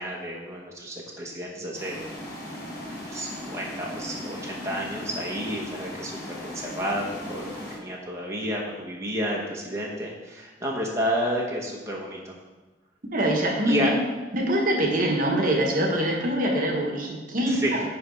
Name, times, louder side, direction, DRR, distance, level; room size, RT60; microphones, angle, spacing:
voice 1, 0.0-2.0 3.1-7.5 7.8-12.4 13.7-13.9 17.5-17.8, equal, 15° right, -3 dB, 1.1 m, -30 dB
sound 1, 1.8-7.8, left 1 dB, 20° left, 1.9 m, -37 dB
voice 2, 13.1-13.9 14.3-17.8, right 1 dB, 50° right, 0 dB, 1.2 m, -24 dB
9.6 x 3.4 x 5.3 m, 1.2 s
head